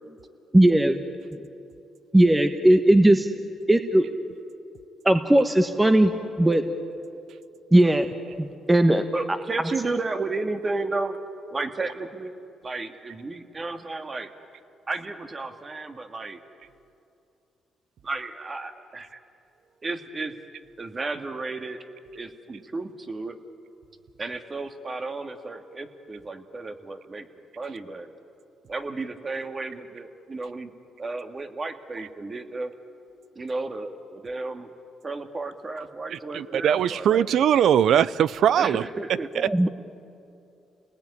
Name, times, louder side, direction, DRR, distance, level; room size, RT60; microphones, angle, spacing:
voice 1, 0.5-1.0 2.1-3.3 3.7-4.1 5.0-6.1 6.4-6.6 7.7-8.1 8.4-9.0 39.5-39.7, right 1 dB, 15° right, 7 dB, 1.3 m, -18 dB
voice 2, 9.1-11.2 11.5-14.3 14.9-16.4 18.0-19.2 19.8-20.3 20.8-21.8 22.2-23.4 24.2-27.3 27.6-28.1 28.7-30.7 31.0-32.8 33.4-34.7 35.0-37.2 38.6-39.3, right 3 dB, 30° right, 7 dB, 2.0 m, -33 dB
voice 3, 36.1-38.8, right 9 dB, 70° right, 18 dB, 0.6 m, -21 dB
30.0 x 19.5 x 9.9 m, 2.7 s
cardioid pair, 80°, 0 cm